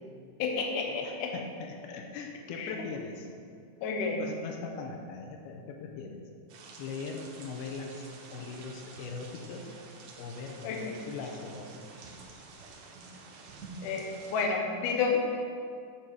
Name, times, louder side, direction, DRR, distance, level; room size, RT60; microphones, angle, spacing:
voice 1, 0.4-1.3 2.5-2.7 3.8-4.2 10.6-10.9 13.8-14.1 14.3-15.2, left 5 dB, 70° left, 1 dB, 2.2 m, -30 dB
voice 2, 0.9-3.3 4.2-6.2 6.8-9.7 10.2-11.7, left 4 dB, 90° left, 2 dB, 2.6 m, -40 dB
sound 1, 6.5-14.5, right 3 dB, 80° right, 1.6 m, -49 dB
7.6 x 7.2 x 4.7 m, 2.3 s
omnidirectional pair, 4.4 m